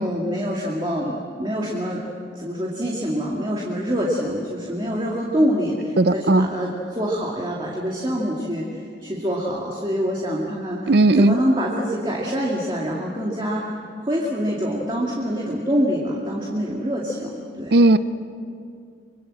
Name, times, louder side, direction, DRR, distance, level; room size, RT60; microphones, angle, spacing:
voice 1, 0.0-2.0 2.4-10.9 11.2-13.6 14.1-17.8, equal, 25° right, -3 dB, 2.3 m, -25 dB
voice 2, 6.0-6.5 10.9-11.4 17.7-18.0, right 2 dB, 55° right, 13 dB, 0.6 m, -15 dB
25.0 x 24.5 x 7.7 m, 2.4 s
head